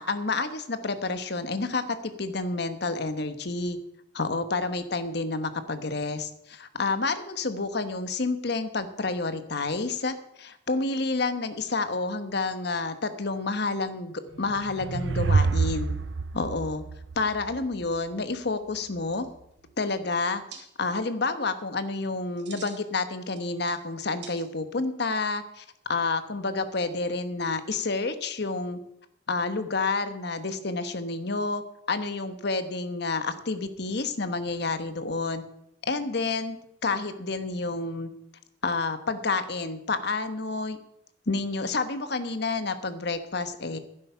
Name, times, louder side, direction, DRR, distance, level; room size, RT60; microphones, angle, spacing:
voice 1, 0.0-3.8 4.1-15.9 16.3-16.8 17.2-19.3 19.8-20.4 20.8-28.8 29.3-31.6 31.9-35.4 35.8-36.6 36.8-38.1 38.6-40.8 41.3-43.8, left 3 dB, 60° left, 10 dB, 1.1 m, -29 dB
sound 1, 14.4-17.8, right 4 dB, 80° right, 0.6 m, -27 dB
sound 2, 19.1-19.7 20.5-20.6 22.2-22.8 23.2-23.9 24.2-24.8, right 6 dB, 65° right, 2.4 m, -46 dB
12.0 x 10.5 x 5.6 m, 0.77 s
head